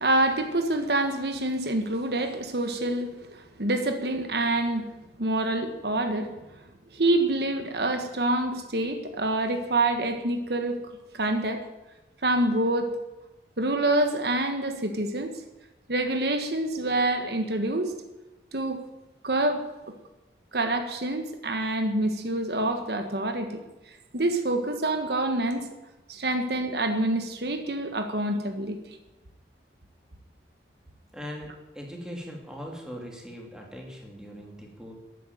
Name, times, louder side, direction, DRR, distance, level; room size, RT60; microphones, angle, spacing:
voice 1, 0.0-4.9 5.2-6.4 6.9-11.6 12.2-12.9 13.6-15.3 15.9-17.9 18.5-18.8 19.2-19.9 20.5-23.6 24.1-25.6 26.1-28.8, right 2 dB, 65° right, 6 dB, 1.4 m, -26 dB
voice 2, 31.1-34.9, equal, 5° right, 0 dB, 2.7 m, -40 dB
13.0 x 9.3 x 9.1 m, 1.1 s
head